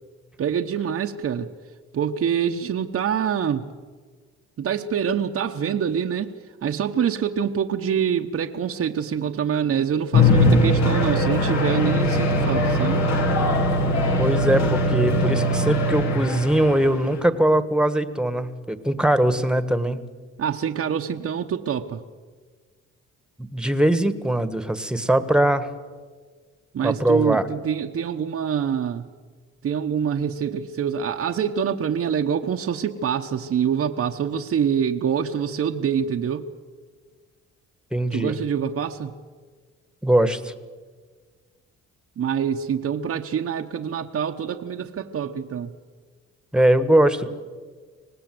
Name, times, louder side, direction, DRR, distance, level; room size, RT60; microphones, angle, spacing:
voice 1, 0.4-1.5 1.9-3.6 4.6-6.3 6.6-13.0 20.4-22.0 26.7-29.1 29.6-36.5 38.1-39.1 42.2-45.7, right 8 dB, 50° right, 3 dB, 1.1 m, -25 dB
sound 1, 10.1-17.2, left 1 dB, 65° left, 2.7 m, -20 dB
voice 2, 14.2-20.0 23.4-25.7 26.8-27.5 37.9-38.4 40.0-40.5 46.5-47.3, right 1 dB, 5° right, 12 dB, 1.6 m, -21 dB
25.0 x 19.0 x 7.9 m, 1.5 s
cardioid pair, 90°, 30 cm